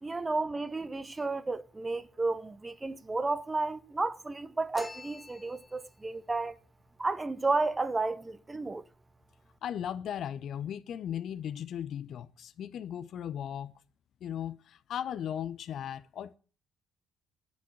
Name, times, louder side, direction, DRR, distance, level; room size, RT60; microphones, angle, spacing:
voice 1, 0.0-6.6 7.0-8.8, right 3 dB, 20° right, 1.2 m, -32 dB
sound 1, 4.7-6.0, left 3 dB, 20° left, 1.1 m, -45 dB
voice 2, 9.6-13.7 14.2-16.4, left 9 dB, 50° left, 0.8 m, -37 dB
10.5 x 10.0 x 9.6 m
figure-of-eight pair, 45°, 0 cm